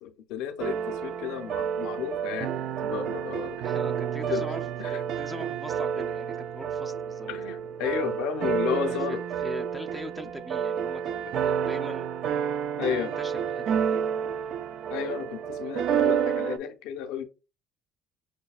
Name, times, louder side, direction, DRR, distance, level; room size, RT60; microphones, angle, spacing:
voice 1, 0.0-2.5 2.8-3.6 4.3-5.0 7.3-9.2 11.3-11.4 12.8-13.1 14.9-17.2, left 8 dB, 80° left, 0.6 m, -32 dB
sound 1, 0.6-16.6, right 8 dB, 55° right, 0.3 m, -30 dB
voice 2, 3.6-7.3 7.8-7.9 8.8-12.1 13.0-14.0, equal, ahead, 0.5 m, -42 dB
6.2 x 2.2 x 2.3 m
cardioid pair, 125°, 0 cm